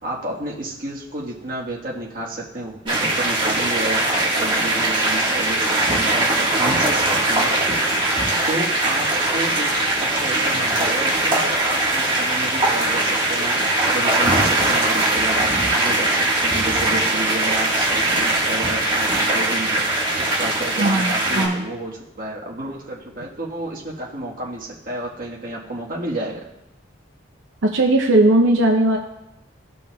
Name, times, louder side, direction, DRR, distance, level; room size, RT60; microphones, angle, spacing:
voice 1, 0.0-7.5 8.5-19.8 20.4-26.5, right 1 dB, 45° right, -3 dB, 1.3 m, -31 dB
sound 1, 2.9-21.5, right 2 dB, 25° right, 1.4 m, -20 dB
voice 2, 20.8-21.6 27.6-29.0, right 1 dB, 80° right, 2 dB, 0.6 m, -17 dB
15.0 x 5.3 x 2.3 m, 0.89 s
head